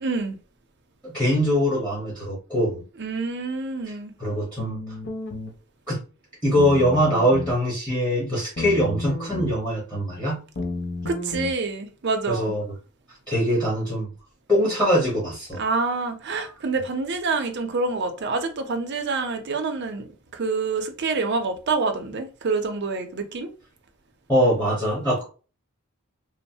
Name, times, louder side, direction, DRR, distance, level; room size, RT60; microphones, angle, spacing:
voice 1, 0.0-0.4 3.0-4.1 11.1-12.5 15.6-23.5, right 4 dB, 55° right, 0.5 m, -27 dB
voice 2, 1.0-2.8 4.2-4.8 5.9-6.0 6.4-10.4 12.3-12.6 13.3-14.1 14.5-15.6 24.3-25.2, equal, 5° left, 1.1 m, -22 dB
sound 1, 4.6-5.5 6.5-7.6 8.6-9.5 10.5-11.5, left 2 dB, 60° left, 0.5 m, -31 dB
3.0 x 2.0 x 2.7 m
head